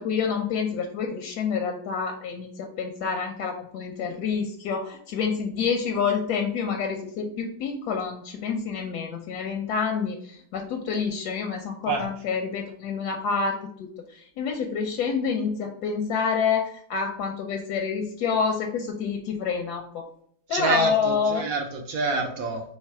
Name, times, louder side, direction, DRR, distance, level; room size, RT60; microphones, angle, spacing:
voice 1, 0.0-2.5 2.8-20.1 20.5-21.5, left 6 dB, 75° left, 3 dB, 0.9 m, -28 dB
voice 2, 20.5-22.6, right 3 dB, 70° right, 3 dB, 0.8 m, -27 dB
3.3 x 3.2 x 4.6 m, 0.63 s
omnidirectional pair, 2.0 m